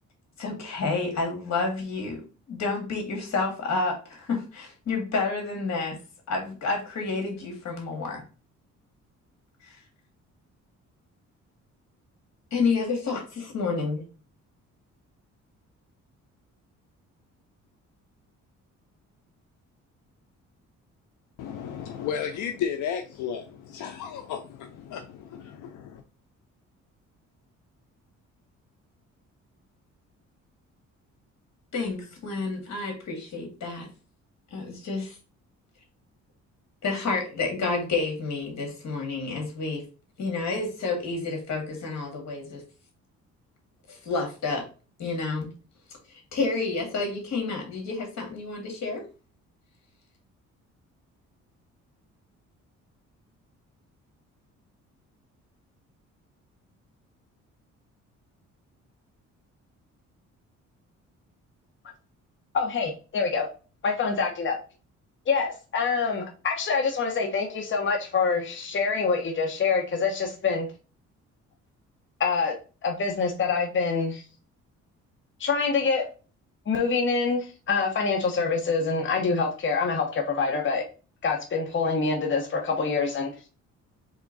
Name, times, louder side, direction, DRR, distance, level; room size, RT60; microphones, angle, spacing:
voice 1, 0.4-2.2 2.5-6.0 6.3-8.2 9.6-9.8 12.5-14.1 31.7-33.9 34.5-35.2 36.8-39.8 40.2-42.6 43.9-44.6 45.0-45.5 46.3-49.0, left 3 dB, 60° left, 2.0 m, -29 dB
voice 2, 21.4-26.0, left 8 dB, 85° left, 0.6 m, -33 dB
voice 3, 62.5-63.5 63.8-64.6 65.3-70.7 72.2-72.5 72.8-74.2 75.4-76.1 76.7-80.8 81.2-83.3, left 4 dB, 40° left, 1.0 m, -26 dB
3.6 x 3.5 x 3.9 m
cardioid pair, 90°, 30 cm